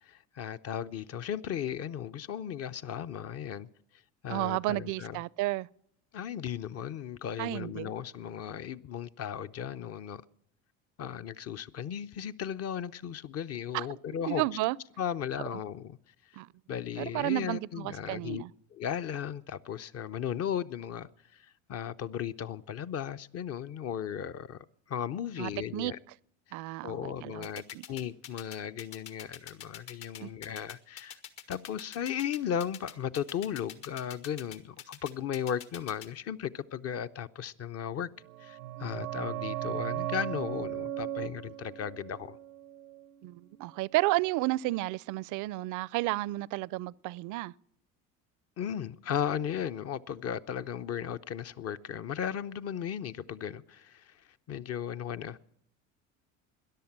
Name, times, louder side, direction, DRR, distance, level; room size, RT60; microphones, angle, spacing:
voice 1, 0.1-3.7 4.2-5.2 6.1-10.2 11.0-14.4 15.0-16.0 16.7-18.4 18.7-26.0 26.5-26.6 26.8-31.2 31.5-38.1 38.4-42.4 48.6-54.1 54.5-55.5, left 9 dB, 40° left, 0.6 m, -36 dB
voice 2, 4.3-5.7 7.4-7.9 13.7-13.9 14.3-14.8 15.5-15.6 16.4-16.5 17.0-18.5 25.4-25.9 26.5-27.5 27.7-27.9 30.2-30.3 43.2-47.5, right 19 dB, 50° right, 0.5 m, -32 dB
sound 1, 27.4-36.1, left 10 dB, 65° left, 1.7 m, -44 dB
sound 2, 38.2-43.6 43.9-44.0, right 14 dB, 85° right, 0.7 m, -37 dB
13.5 x 10.5 x 8.7 m
hypercardioid pair, 80°, 39 cm